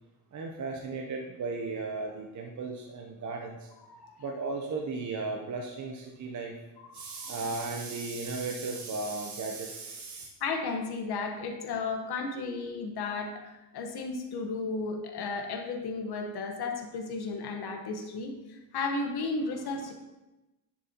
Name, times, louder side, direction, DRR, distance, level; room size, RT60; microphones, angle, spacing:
voice 1, 0.3-3.7 4.2-6.6 6.9-10.3, right 3 dB, 50° right, 1 dB, 0.9 m, -35 dB
voice 2, 7.0-7.3 10.4-19.9, left 3 dB, 75° left, 3 dB, 1.4 m, -34 dB
10.5 x 7.5 x 2.9 m, 1.0 s
cardioid pair, 140°, 39 cm